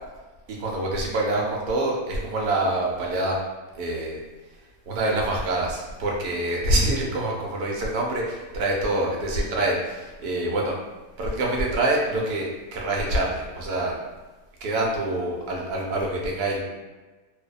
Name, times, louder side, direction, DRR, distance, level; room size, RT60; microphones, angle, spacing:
voice 1, 0.5-3.4 3.8-4.2 4.9-10.7 11.2-12.5 12.7-14.0 14.6-16.6, right 1 dB, 85° right, -2 dB, 1.1 m, -25 dB
2.6 x 2.1 x 2.2 m, 1.2 s
omnidirectional pair, 1.5 m